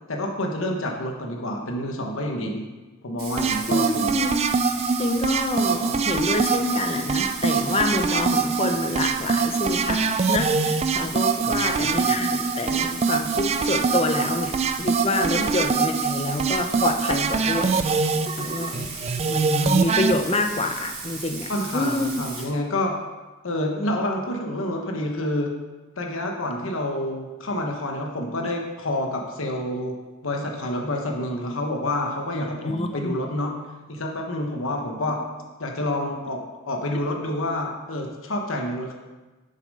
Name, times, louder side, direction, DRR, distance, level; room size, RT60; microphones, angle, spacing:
voice 1, 0.1-2.6 3.0-4.2 11.4-12.0 15.3-15.5 21.5-22.9 23.4-25.5 26.0-29.9 30.2-33.5 33.9-35.2 35.6-38.9, left 1 dB, 75° left, 1 dB, 1.1 m, -28 dB
Bathtub (filling or washing), 3.2-22.4, right 4 dB, 50° right, 1.9 m, -37 dB
sound 1, 3.4-20.1, right 5 dB, 30° right, 0.4 m, -24 dB
voice 2, 3.7-4.5 5.0-18.9 19.3-22.1 32.3-33.2, left 2 dB, 30° left, 5 dB, 0.7 m, -27 dB
6.9 x 6.7 x 5.4 m, 1.2 s
head